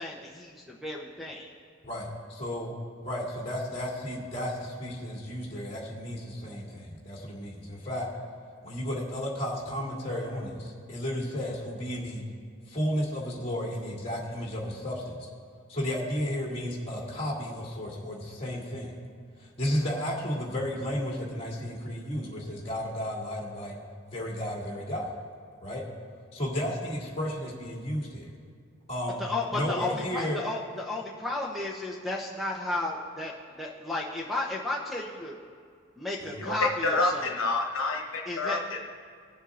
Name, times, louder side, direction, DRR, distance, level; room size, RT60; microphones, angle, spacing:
voice 1, 0.0-1.5 29.2-35.4 36.0-37.5 38.3-38.6, left 2 dB, ahead, -2 dB, 0.7 m, -33 dB
voice 2, 1.8-2.7 3.0-8.1 8.6-12.2 12.7-15.3 15.7-19.0 19.4-23.8 24.1-25.1 25.6-25.8 26.3-28.3 28.9-29.2 29.5-30.4 36.2-36.5, equal, 30° left, -4 dB, 2.2 m, -33 dB
voice 3, 36.8-39.0, left 3 dB, 75° left, 1 dB, 1.2 m, -29 dB
19.5 x 7.2 x 2.5 m, 2.2 s
head